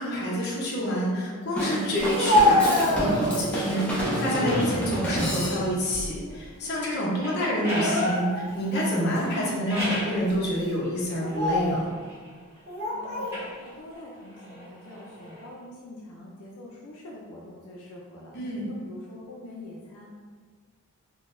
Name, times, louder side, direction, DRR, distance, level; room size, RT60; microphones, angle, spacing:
voice 1, 0.0-11.8 18.3-18.6, equal, 45° left, -5 dB, 0.7 m, -28 dB
Drum kit / Drum, 1.6-5.9, right 1 dB, 5° left, 0.4 m, -29 dB
Speech, 2.0-3.6 4.1-4.7 5.1-6.3 6.6-6.8 7.6-8.6 9.2-9.3 10.1-10.3 11.1-11.8 12.7-13.4, left 1 dB, 50° right, 0.6 m, -26 dB
sound 1, 7.2-10.2 10.9-12.6 13.1-15.5, equal, 10° right, 1.1 m, -36 dB
voice 2, 12.9-20.1, left 1 dB, 80° left, -3 dB, 0.4 m, -45 dB
3.7 x 2.1 x 2.5 m, 1.5 s
head